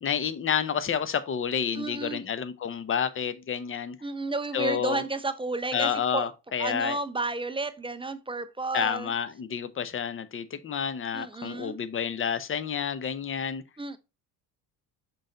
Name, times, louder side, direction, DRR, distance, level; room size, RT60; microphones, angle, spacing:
voice 1, 0.0-4.0 4.5-5.0 5.7-7.0 8.7-13.6, left 7 dB, 25° left, 0.7 m, -29 dB
voice 2, 1.8-2.2 4.0-6.3 6.6-9.1 11.1-11.8 13.8-14.0, right 3 dB, 10° right, 0.5 m, -32 dB
6.3 x 4.0 x 3.9 m
hypercardioid pair, 65°, 50 cm